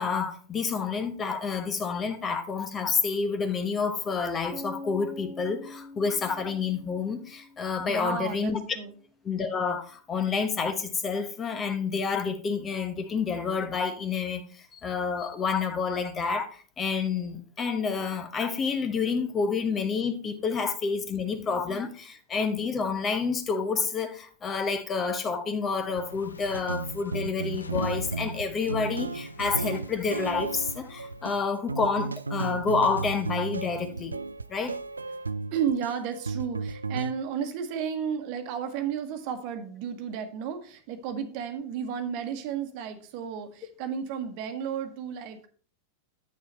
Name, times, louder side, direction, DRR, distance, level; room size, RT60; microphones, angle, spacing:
voice 1, 0.0-8.6 9.2-34.1 34.5-34.8, left 5 dB, 25° left, 1.0 m, -29 dB
sound 1, 4.5-8.4, left 2 dB, 10° right, 0.8 m, -44 dB
voice 2, 7.8-9.0 35.5-45.5, right 7 dB, 45° right, 1.2 m, -33 dB
sound 2, 25.9-31.4, left 4 dB, 75° left, 0.6 m, -43 dB
sound 3, 26.5-37.1, right 4 dB, 80° right, 0.3 m, -34 dB
8.4 x 6.6 x 4.1 m
figure-of-eight pair, 90°, 0 cm